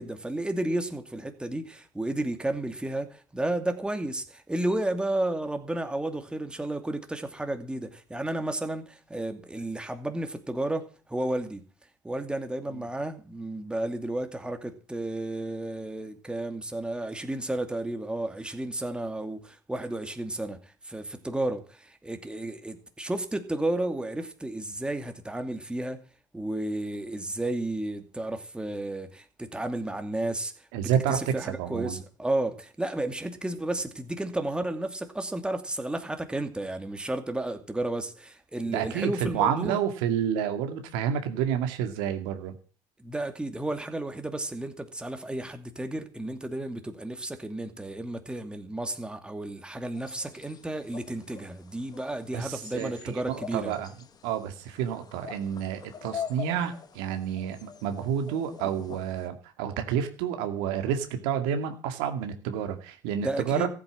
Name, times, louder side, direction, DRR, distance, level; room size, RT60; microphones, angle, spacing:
voice 1, 0.0-11.6 12.0-20.6 20.8-26.0 26.3-30.5 30.8-39.8 43.0-53.8 63.2-63.7, right 1 dB, 10° right, 2.6 m, -32 dB
voice 2, 30.7-32.0 38.7-42.5 52.3-53.9 54.2-63.7, right 8 dB, 80° right, 2.2 m, -29 dB
sound 1, 49.9-59.3, left 7 dB, 40° left, 2.0 m, -44 dB
15.0 x 8.6 x 7.3 m
hypercardioid pair, 75°, 10 cm